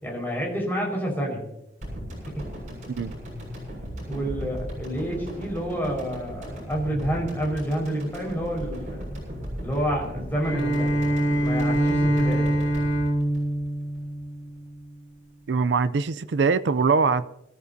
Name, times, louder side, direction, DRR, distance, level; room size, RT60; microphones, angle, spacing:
voice 1, 0.0-1.4 2.3-2.4 4.1-9.2 9.6-12.5, equal, 10° left, -2 dB, 4.9 m, -29 dB
sound 1, 1.8-14.1 14.4-14.5, equal, 40° right, 7.1 m, -37 dB
Bowed string instrument, 10.4-14.8, right 1 dB, 85° left, 4.7 m, -24 dB
voice 2, 15.5-17.3, right 4 dB, 75° right, 12 dB, 0.5 m, -22 dB
24.5 x 13.5 x 2.7 m, 0.84 s
head